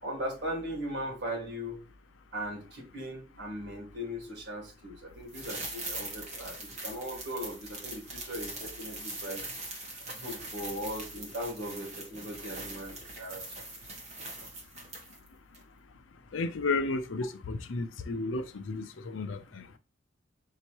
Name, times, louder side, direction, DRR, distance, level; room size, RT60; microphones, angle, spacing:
voice 1, 0.0-1.8 2.3-9.4 10.1-13.4, equal, 60° right, 1.7 m, -38 dB
sound 1, 5.3-15.3 15.5-15.6, right 2 dB, 35° right, 1.2 m, -42 dB
voice 2, 16.3-19.6, left 3 dB, 90° left, 0.6 m, -33 dB
5.5 x 2.8 x 2.9 m
head